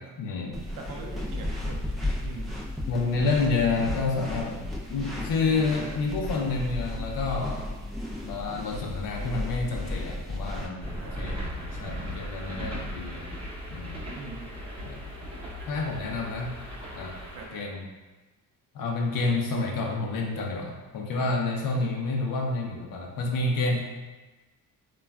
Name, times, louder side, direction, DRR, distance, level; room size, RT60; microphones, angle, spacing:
voice 1, 0.2-0.6 2.9-7.7 8.2-11.5 11.8-13.2 13.7-13.9 14.9-15.1 15.7-16.6 16.9-17.2 17.5-17.8 18.7-23.8, left 3 dB, 65° left, 0 dB, 0.6 m, -29 dB
sound 1, 0.5-10.7, left 1 dB, ahead, 0.4 m, -34 dB
voice 2, 0.8-1.8 2.2-2.5 5.6-6.0 10.5-11.7 12.4-12.9 14.1-14.9 15.6-15.7 17.3-17.8 21.7-21.9, right 3 dB, 65° right, 0 dB, 0.5 m, -44 dB
sound 2, 10.8-17.5, equal, 15° right, 0.9 m, -37 dB
3.1 x 2.3 x 2.3 m, 1.2 s
cardioid pair, 90°, 36 cm